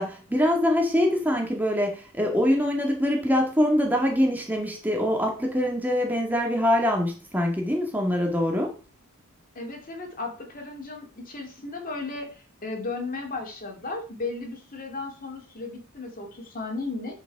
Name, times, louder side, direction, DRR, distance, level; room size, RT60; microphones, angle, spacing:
voice 1, 0.0-8.7, left 1 dB, 10° right, 1 dB, 1.9 m, -24 dB
voice 2, 9.5-17.1, left 3 dB, 40° left, 2 dB, 2.5 m, -35 dB
11.0 x 5.1 x 4.7 m, 0.37 s
head